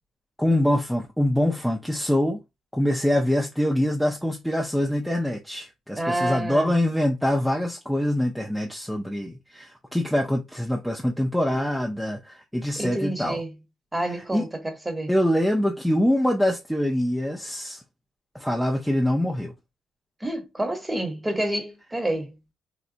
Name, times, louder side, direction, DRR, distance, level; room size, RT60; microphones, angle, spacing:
voice 1, 0.4-2.4 2.7-13.4 14.3-14.4 15.1-17.8 18.3-19.5, left 1 dB, ahead, 0.5 m, -24 dB
voice 2, 6.0-6.7 12.8-13.5 13.9-15.1 20.2-22.4, right 1 dB, 15° right, 1.0 m, -28 dB
3.9 x 2.2 x 2.6 m
cardioid pair, 90°, 0 cm